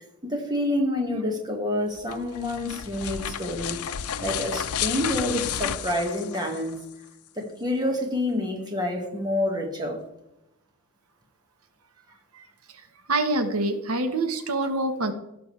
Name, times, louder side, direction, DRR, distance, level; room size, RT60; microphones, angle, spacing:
voice 1, 0.0-3.8 4.2-6.8 7.3-10.0, left 1 dB, 20° right, 1.7 m, -28 dB
sound 1, 2.0-6.9, left 9 dB, 85° left, 0.5 m, -32 dB
voice 2, 13.1-15.1, right 2 dB, 85° right, 1.1 m, -25 dB
16.5 x 6.4 x 3.2 m
head